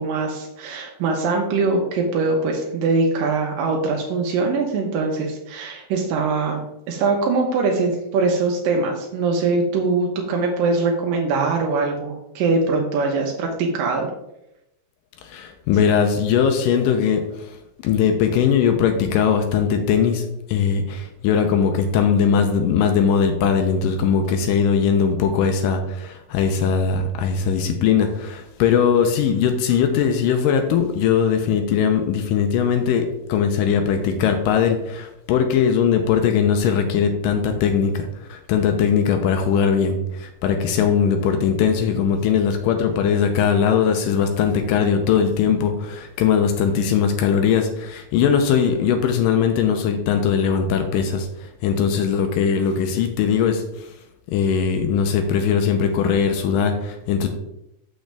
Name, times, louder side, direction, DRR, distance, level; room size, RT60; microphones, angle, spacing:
voice 1, 0.0-14.1, right 3 dB, 85° right, 0 dB, 2.6 m, -22 dB
voice 2, 15.2-17.6 17.8-53.9 54.3-57.3, left 7 dB, 85° left, 5 dB, 2.3 m, -20 dB
6.4 x 6.2 x 3.4 m, 0.84 s
omnidirectional pair, 3.9 m